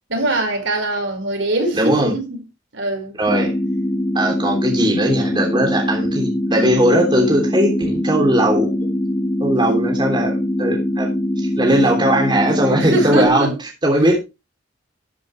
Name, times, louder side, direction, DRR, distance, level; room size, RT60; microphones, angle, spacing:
voice 1, 0.1-2.4 2.7-3.2 11.8-12.0 12.8-13.6 14.0-14.1, right 2 dB, 75° right, 5.4 m, -22 dB
voice 2, 1.7-2.1 3.2-3.5 4.1-8.7 9.4-11.1 11.4-13.5 13.8-14.2, right 1 dB, 25° right, 3.3 m, -18 dB
sound 1, 3.3-13.3, left 1 dB, 25° left, 1.4 m, -22 dB
12.0 x 10.5 x 3.3 m
head